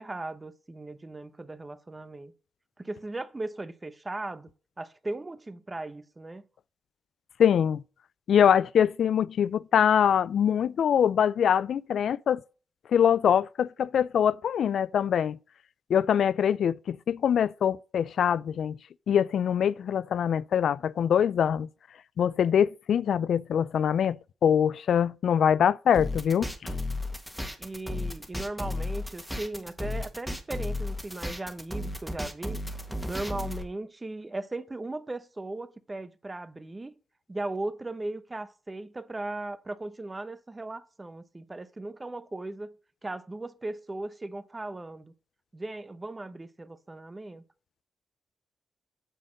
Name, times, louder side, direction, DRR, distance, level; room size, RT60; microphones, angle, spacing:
voice 1, 0.0-2.3 2.8-4.5 4.8-6.4 27.6-32.6 33.1-36.9 37.3-42.8 43.0-45.1 45.5-47.4, right 2 dB, 25° right, 0.9 m, -37 dB
voice 2, 7.4-7.8 8.3-12.4 12.9-15.4 15.9-18.8 19.1-21.7 22.2-26.7, left 8 dB, 75° left, 0.3 m, -24 dB
sound 1, 25.9-33.6, left 2 dB, ahead, 1.6 m, -34 dB
9.2 x 4.1 x 6.5 m
cardioid pair, 65°, 0 cm